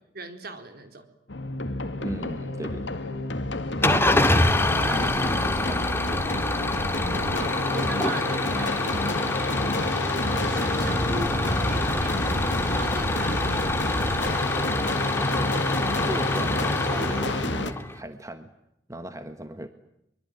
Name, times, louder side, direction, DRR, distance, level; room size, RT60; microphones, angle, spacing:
voice 1, 0.1-1.1 4.8-5.1 7.1-9.7 10.2-14.8, right 2 dB, 60° right, 6 dB, 4.2 m, -40 dB
sound 1, 1.3-17.7, left 2 dB, 70° left, 2.0 m, -30 dB
voice 2, 2.0-3.0 4.9-6.1 16.0-18.5 18.9-19.7, right 1 dB, 20° right, 8 dB, 1.4 m, -36 dB
Engine starting / Idling, 3.8-18.0, left 2 dB, 15° left, 2.0 m, -26 dB
23.5 x 23.5 x 9.4 m, 0.81 s
head